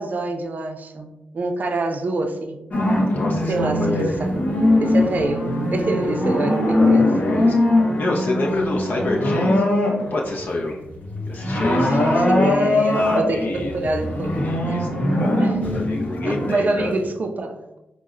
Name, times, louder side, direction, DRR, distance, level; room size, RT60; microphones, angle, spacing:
voice 1, 0.0-2.6 3.5-4.4 4.8-7.1 11.6-15.7 16.2-17.8, right 2 dB, 50° right, 4 dB, 0.4 m, -26 dB
sound 1, 2.7-10.3 10.7-17.0, left 1 dB, 45° left, 0.8 m, -21 dB
voice 2, 3.1-4.1 6.6-7.5 8.0-9.7 10.1-10.8 11.3-12.5 12.9-13.7 14.3-14.9 15.2-16.9, left 2 dB, 65° left, -2 dB, 0.4 m, -27 dB
4.0 x 2.0 x 2.4 m, 0.96 s
cardioid pair, 75°, 4 cm